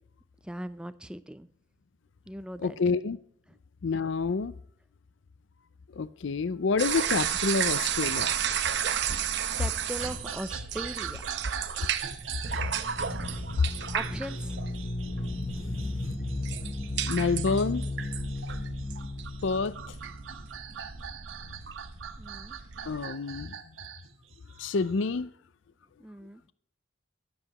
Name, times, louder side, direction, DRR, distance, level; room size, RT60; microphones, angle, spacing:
voice 1, 0.4-1.5 2.3-2.8 3.5-3.6 9.5-11.8 13.9-14.6 22.2-22.6 26.0-26.4, equal, 5° right, 0.4 m, -40 dB
voice 2, 2.6-3.2 3.8-4.5 5.9-8.3 17.1-17.8 19.4-19.9 22.9-23.5 24.6-25.3, left 4 dB, 60° left, 0.5 m, -28 dB
sound 1, 6.8-23.1, right 8 dB, 55° right, 0.8 m, -33 dB
sound 2, 10.0-25.1, right 7 dB, 75° right, 1.4 m, -43 dB
sound 3, 12.4-21.0, left 2 dB, 25° left, 0.8 m, -35 dB
23.0 x 7.8 x 3.0 m
head